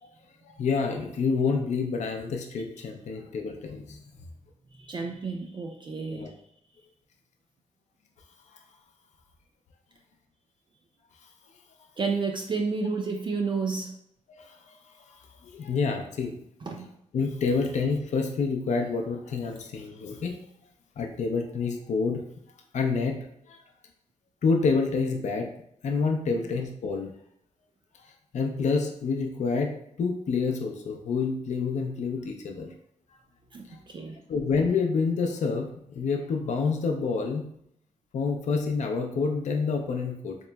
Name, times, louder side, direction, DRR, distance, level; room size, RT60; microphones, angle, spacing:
voice 1, 0.4-4.0 6.1-6.3 14.4-14.6 15.1-16.3 17.1-20.4 21.0-22.2 22.7-23.6 24.4-25.5 25.8-27.1 28.3-29.7 30.0-32.7 33.7-33.8 34.3-35.7 35.9-37.5 38.1-40.4, left 4 dB, 65° left, 3 dB, 0.5 m, -28 dB
voice 2, 4.7-6.3 12.0-13.9 16.7-16.9 26.3-26.5 33.5-34.2, right 4 dB, 40° right, 2 dB, 0.4 m, -31 dB
4.0 x 2.9 x 2.2 m, 0.72 s
wide cardioid pair, 120°, 13 cm